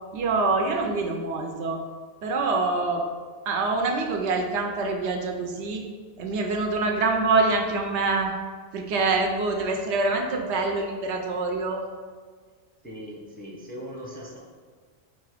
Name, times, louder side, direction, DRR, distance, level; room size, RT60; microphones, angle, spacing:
voice 1, 0.1-1.8 2.2-3.0 3.5-5.8 6.2-8.3 8.7-11.9, right 3 dB, 75° right, 3 dB, 0.9 m, -25 dB
voice 2, 12.8-14.4, equal, 10° left, -4 dB, 0.5 m, -39 dB
3.8 x 2.9 x 4.8 m, 1.5 s
omnidirectional pair, 1.2 m